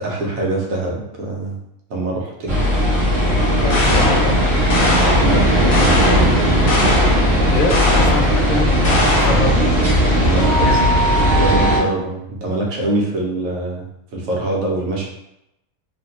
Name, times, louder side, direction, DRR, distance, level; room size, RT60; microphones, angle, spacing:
voice 1, 0.0-1.6 1.9-2.6 5.2-6.4 10.2-10.8 11.1-13.9 14.1-15.1, right 2 dB, 65° right, -2 dB, 1.1 m, -24 dB
sound 1, 2.5-11.8, equal, 20° right, 1.3 m, -16 dB
voice 2, 3.4-4.4 7.5-9.9 10.4-10.9, left 2 dB, 70° left, 2 dB, 0.9 m, -24 dB
sound 2, 3.7-4.3 4.7-5.3 5.7-6.3 6.7-7.2 7.7-8.3 8.8-9.5, left 1 dB, 45° left, 0.8 m, -20 dB
3.1 x 2.5 x 2.8 m, 0.84 s
omnidirectional pair, 1.6 m